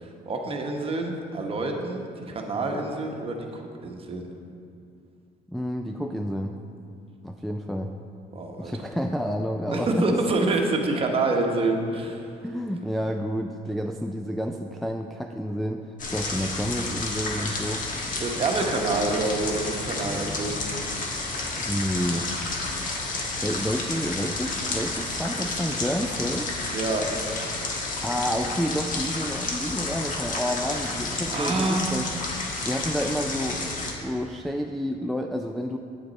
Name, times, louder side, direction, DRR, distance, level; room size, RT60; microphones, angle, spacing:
voice 1, 0.0-4.3 8.3-8.7 9.7-12.3 18.2-20.7 26.7-27.2 31.3-31.9, right 2 dB, 35° right, 2 dB, 1.1 m, -27 dB
voice 2, 5.5-6.6 7.2-7.9 8.6-10.1 10.3-10.4 12.4-17.9 21.6-22.3 23.4-26.5 28.0-32.1 32.7-35.8, equal, ahead, 2 dB, 0.3 m, -29 dB
sound 1, 16.0-33.9, left 3 dB, 50° left, 1.4 m, -31 dB
8.7 x 7.9 x 4.1 m, 2.5 s
cardioid pair, 110°, 17 cm